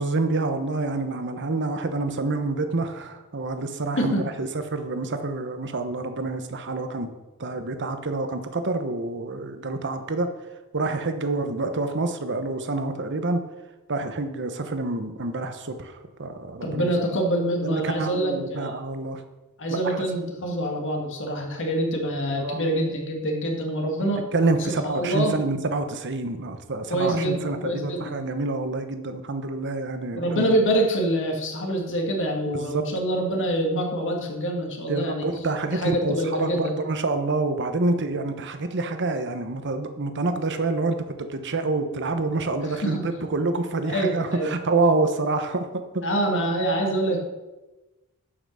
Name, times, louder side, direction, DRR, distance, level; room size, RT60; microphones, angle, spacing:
voice 1, 0.0-7.1 7.4-10.3 10.7-13.4 13.9-16.9 17.6-19.2 19.7-20.0 22.4-22.8 24.3-30.5 32.5-32.8 34.9-41.0 41.3-46.0, right 3 dB, 55° right, 8 dB, 1.1 m, -27 dB
voice 2, 16.6-18.7 19.6-24.2 24.7-25.3 26.9-28.2 30.1-35.3 35.7-36.7 42.8-43.0 43.8-44.5 46.0-47.2, right 1 dB, 60° left, 2 dB, 1.9 m, -25 dB
11.0 x 6.0 x 6.4 m, 1.1 s
head